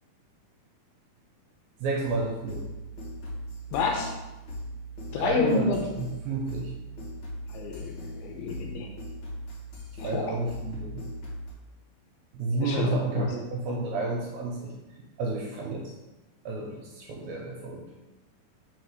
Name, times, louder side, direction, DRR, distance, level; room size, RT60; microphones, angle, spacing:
voice 1, 1.8-2.6 5.1-6.7 10.0-11.1 12.3-14.7 15.2-15.9 16.5-17.8, right 3 dB, 80° right, -1 dB, 2.3 m, -31 dB
sound 1, 2.0-11.5, equal, 55° left, 1.5 m, -39 dB
voice 2, 3.7-4.1 5.1-5.8 7.5-8.9 10.0-10.4 12.6-13.4, left 4 dB, 80° left, 2 dB, 2.4 m, -29 dB
4.9 x 4.8 x 4.7 m, 1.1 s
omnidirectional pair, 4.9 m